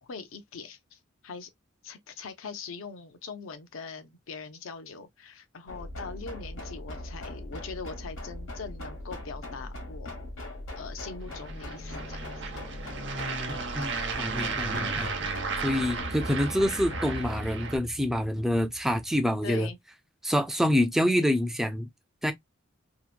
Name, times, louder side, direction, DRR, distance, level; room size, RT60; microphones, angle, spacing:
voice 1, 0.0-1.5 1.8-10.1 10.8-12.4 19.4-19.8 21.1-21.3, left 5 dB, 85° left, 0.6 m, -42 dB
sound 1, 5.7-19.4, left 1 dB, 70° left, 1.1 m, -40 dB
sound 2, 11.2-17.8, right 4 dB, 60° right, 0.6 m, -34 dB
voice 2, 13.5-15.1 15.6-19.7 20.2-21.9 22.2-22.3, equal, ahead, 0.3 m, -27 dB
2.8 x 2.1 x 2.3 m
head